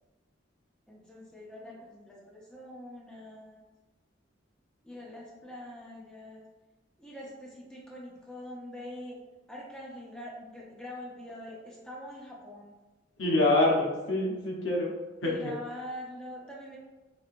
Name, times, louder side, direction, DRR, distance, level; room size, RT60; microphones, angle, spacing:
voice 1, 0.9-3.7 4.8-6.4 7.0-9.2 9.5-12.7 15.2-16.8, left 1 dB, 5° left, -5 dB, 0.6 m, -44 dB
voice 2, 13.2-14.9 15.2-15.5, left 2 dB, 85° left, -2 dB, 0.9 m, -26 dB
4.3 x 2.7 x 2.5 m, 1.1 s
head